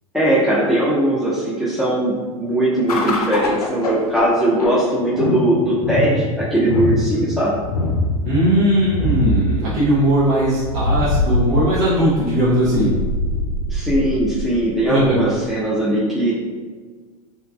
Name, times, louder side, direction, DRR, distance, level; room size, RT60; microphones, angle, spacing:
voice 1, 0.1-7.5 13.7-16.4, right 1 dB, ahead, -9 dB, 0.5 m, -19 dB
sound 1, 2.9-15.5, left 1 dB, 90° left, 0.4 m, -23 dB
voice 2, 8.2-12.9 14.9-15.4, right 1 dB, 65° right, -10 dB, 0.9 m, -18 dB
3.0 x 2.3 x 2.3 m, 1.5 s
hypercardioid pair, 95°, 19 cm